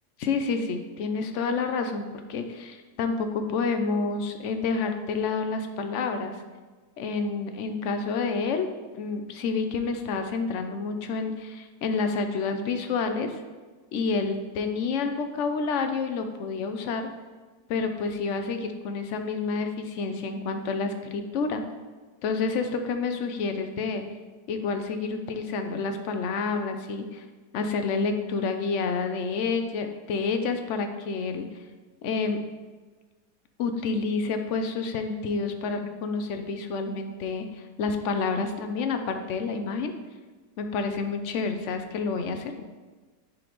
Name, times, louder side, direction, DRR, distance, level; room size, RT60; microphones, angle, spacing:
voice 1, 0.2-6.3 7.0-8.7 8.9-13.3 13.9-17.1 17.7-21.6 22.2-24.0 24.5-27.2 27.5-31.5 32.0-32.4 33.6-37.5 37.8-39.9 40.6-42.5, left 4 dB, 65° left, 7 dB, 0.8 m, -29 dB
10.5 x 3.9 x 3.1 m, 1.3 s
omnidirectional pair, 1.7 m